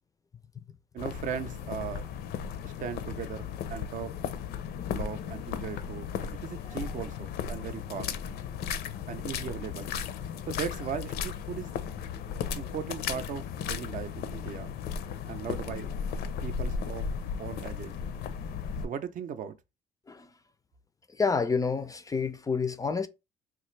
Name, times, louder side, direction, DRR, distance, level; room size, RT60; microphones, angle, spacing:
voice 1, 0.9-2.1 2.6-4.1 4.9-6.1 6.4-8.1 9.1-9.9 10.5-11.7 12.6-14.7 15.3-15.9 16.4-17.0 17.4-17.9 18.8-19.6, right 8 dB, 50° right, 0.5 m, -38 dB
sound 1, 1.0-18.9, left 7 dB, 70° left, 0.5 m, -35 dB
voice 2, 21.2-23.1, left 5 dB, 20° left, 0.4 m, -28 dB
3.6 x 2.5 x 3.1 m
cardioid pair, 110°, 17 cm